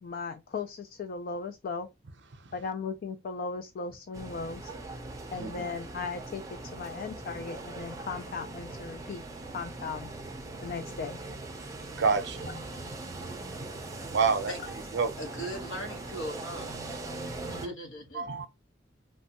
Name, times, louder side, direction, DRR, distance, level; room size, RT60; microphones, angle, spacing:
voice 1, 0.0-1.9 2.5-4.7 5.3-9.2 9.5-10.1 10.6-11.2, left 4 dB, 50° left, 0.3 m, -37 dB
sound 1, 4.1-17.7, right 2 dB, 20° right, 0.5 m, -41 dB
voice 2, 12.0-12.5 14.1-14.5 14.9-15.1 17.6-17.7 18.1-18.5, right 5 dB, 65° right, 0.5 m, -27 dB
voice 3, 15.2-16.7 17.5-18.3, equal, 75° left, 1.1 m, -39 dB
3.1 x 2.2 x 2.8 m
head